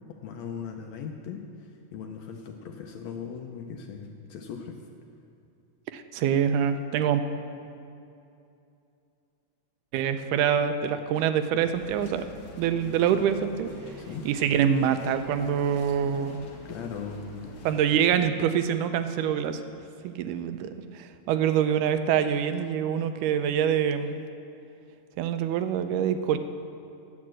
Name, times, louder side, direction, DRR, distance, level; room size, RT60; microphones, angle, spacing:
voice 1, 0.1-4.8 14.0-14.3 16.6-17.5, left 6 dB, 75° left, 3 dB, 1.7 m, -39 dB
voice 2, 5.9-7.2 9.9-12.3 12.6-13.7 14.3-16.5 17.7-19.6 20.0-20.7 21.0-24.2 25.2-26.4, right 8 dB, 85° right, 9 dB, 2.1 m, -25 dB
sound 1, 11.6-18.1, left 2 dB, 60° left, 1.7 m, -45 dB
9.3 x 8.4 x 7.5 m, 2.6 s
omnidirectional pair, 3.6 m